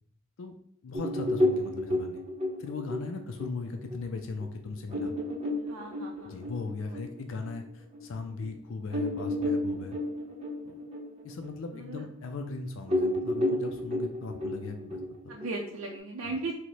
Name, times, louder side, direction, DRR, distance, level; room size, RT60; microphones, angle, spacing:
voice 1, 0.8-2.2 2.6-5.1 6.2-10.0 10.6-10.8 11.2-15.3 16.3-16.4, left 4 dB, 65° left, 5 dB, 0.4 m, -38 dB
sound 1, 0.9-8.0 8.4-8.5 8.9-12.5 12.9-16.0, left 1 dB, 30° right, 0.8 m, -32 dB
voice 2, 5.7-6.4 6.9-7.0 11.7-12.0 15.3-16.5, right 3 dB, 85° right, -1 dB, 0.5 m, -37 dB
4.6 x 2.1 x 4.0 m, 0.66 s
head